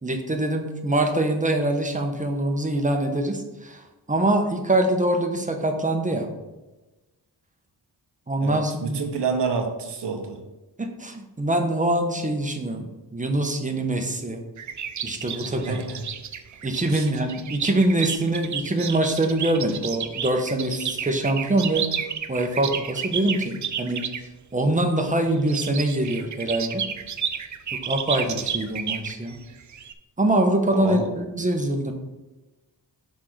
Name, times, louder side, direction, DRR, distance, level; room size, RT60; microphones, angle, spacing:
voice 1, 0.0-6.3 8.3-9.0 10.8-14.4 15.0-15.8 16.6-22.0 22.3-24.0 24.5-26.8 27.8-29.4 30.2-31.9, right 1 dB, 20° right, 4 dB, 1.0 m, -24 dB
voice 2, 8.4-10.4 15.4-16.0 16.9-17.1 30.7-31.1, right 5 dB, 75° right, 4 dB, 1.2 m, -28 dB
sound 1, 14.6-24.2 25.4-29.9, right 8 dB, 45° right, 0.6 m, -31 dB
6.2 x 3.8 x 6.2 m, 1.1 s
cardioid pair, 90°, 42 cm